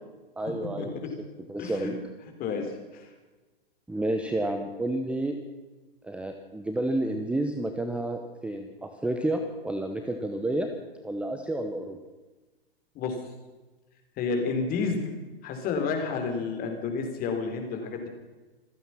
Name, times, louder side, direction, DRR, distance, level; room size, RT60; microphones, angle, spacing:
voice 1, 0.4-0.9 1.5-1.9 3.9-5.4 6.0-10.7 11.0-12.0, right 1 dB, 5° right, 6 dB, 1.0 m, -30 dB
voice 2, 1.6-1.9 2.4-2.7 2.9-3.1 13.0-13.1 14.2-15.2 15.4-18.1, left 4 dB, 30° left, 5 dB, 3.8 m, -30 dB
27.0 x 9.2 x 5.8 m, 1.2 s
figure-of-eight pair, 120°, 31 cm